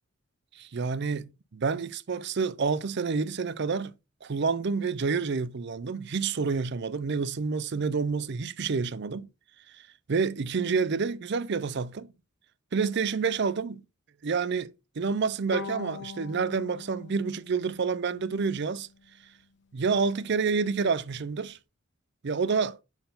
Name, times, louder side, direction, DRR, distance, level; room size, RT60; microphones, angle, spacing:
voice 1, 0.6-3.9 4.2-9.3 10.1-12.1 12.7-13.8 14.2-18.9 19.7-21.6 22.2-22.8, right 5 dB, 50° right, 0.5 m, -28 dB
Bowed string instrument, 15.5-18.8, left 5 dB, 55° left, 1.0 m, -42 dB
5.6 x 4.6 x 5.4 m
head